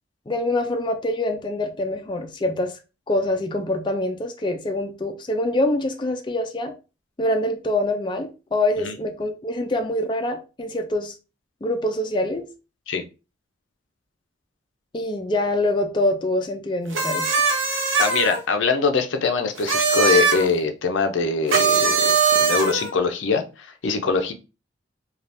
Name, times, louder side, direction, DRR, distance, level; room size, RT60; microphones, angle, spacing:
voice 1, 0.3-2.7 3.1-6.7 7.2-11.1 11.6-12.5 14.9-17.4, left 1 dB, 25° left, 0.4 m, -25 dB
sound 1, 16.9-18.4 19.6-20.5 21.5-22.9, right 5 dB, 80° right, 0.8 m, -20 dB
voice 2, 18.0-24.3, left 4 dB, 75° left, 0.5 m, -23 dB
3.4 x 2.4 x 2.6 m
head